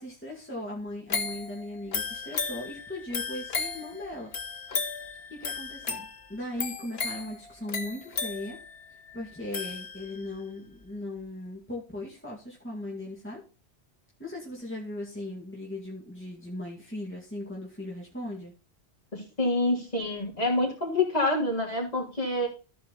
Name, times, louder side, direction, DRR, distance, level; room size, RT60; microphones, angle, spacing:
voice 1, 0.0-4.3 5.3-8.6 9.1-13.4 14.2-18.5, left 1 dB, 10° left, -3 dB, 2.2 m, -38 dB
sound 1, 1.1-10.4 10.8-10.9, left 4 dB, 65° left, 1.3 m, -35 dB
voice 2, 19.1-22.5, left 2 dB, 35° left, -3 dB, 3.4 m, -27 dB
14.0 x 4.8 x 4.0 m, 0.33 s
omnidirectional pair, 1.1 m